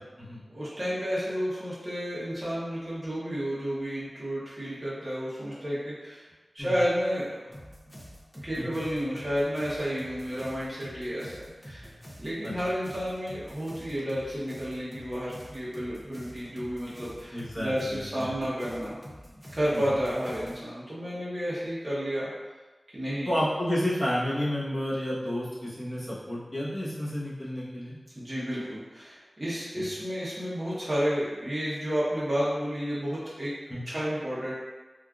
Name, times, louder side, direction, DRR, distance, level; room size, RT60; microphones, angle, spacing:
voice 1, 0.5-6.3 6.5-7.5 8.4-11.9 12.2-19.0 19.5-22.3 22.9-23.3 28.1-33.6 33.9-34.5, equal, 30° right, -9 dB, 0.8 m, -31 dB
sound 1, 7.5-20.6, equal, 10° left, 0.6 m, -47 dB
voice 2, 17.3-18.3 19.7-19.8 23.2-27.9 29.7-29.9 33.7-33.8, equal, 25° left, -8 dB, 1.0 m, -31 dB
3.5 x 2.4 x 2.3 m, 1.2 s
wide cardioid pair, 80°, 0 cm